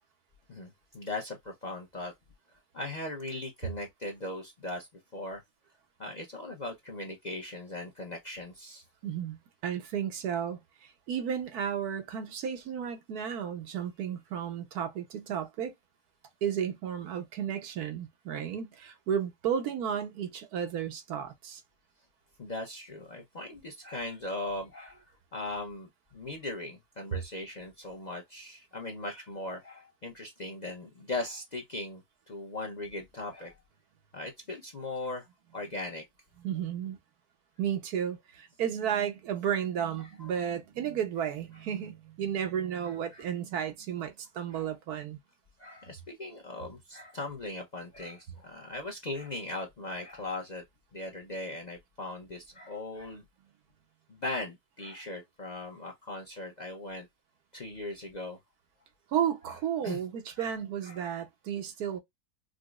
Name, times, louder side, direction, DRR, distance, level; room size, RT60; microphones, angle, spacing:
voice 1, 0.5-2.1 2.7-5.4 6.0-8.8 22.4-25.0 25.3-33.5 34.1-35.3 35.5-36.0 40.0-40.3 42.8-43.3 44.5-44.7 45.6-50.6 50.9-53.2 54.1-57.1 57.5-58.4 59.8-60.0 60.4-60.5 60.8-61.0, left 2 dB, 45° left, 0.6 m, -39 dB
voice 2, 9.0-9.4 9.6-15.7 16.4-21.6 36.4-37.0 37.6-45.2 59.1-62.0, right 8 dB, 85° right, 1.3 m, -33 dB
5.0 x 2.0 x 2.3 m
omnidirectional pair, 1.6 m